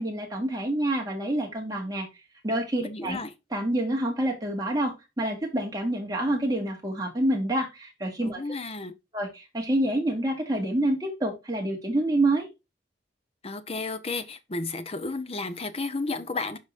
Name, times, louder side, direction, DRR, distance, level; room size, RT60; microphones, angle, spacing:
voice 1, 0.0-2.1 2.4-3.2 3.5-8.4 9.1-12.5, right 1 dB, 20° right, 2.3 m, -27 dB
voice 2, 2.8-3.3 8.2-8.9 13.4-16.6, left 3 dB, 35° left, 0.8 m, -32 dB
11.5 x 3.9 x 2.5 m
head